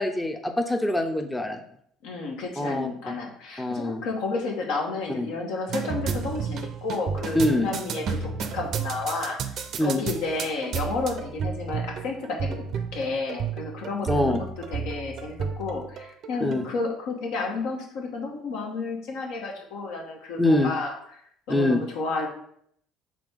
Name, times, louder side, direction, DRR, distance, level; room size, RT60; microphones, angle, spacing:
voice 1, 0.0-1.6 2.6-2.9 3.6-4.0 5.2-5.3 7.4-7.7 9.8-10.0 14.0-14.4 16.4-16.6 20.4-20.7 21.5-21.8, left 1 dB, 10° left, 4 dB, 0.5 m, -24 dB
voice 2, 2.0-9.4 9.8-12.7 12.9-21.0 21.5-22.3, left 3 dB, 75° left, 0 dB, 1.0 m, -31 dB
sound 1, 5.7-16.6, right 6 dB, 55° right, 0.5 m, -32 dB
4.9 x 2.9 x 3.6 m, 0.67 s
supercardioid pair, 75°, 0 cm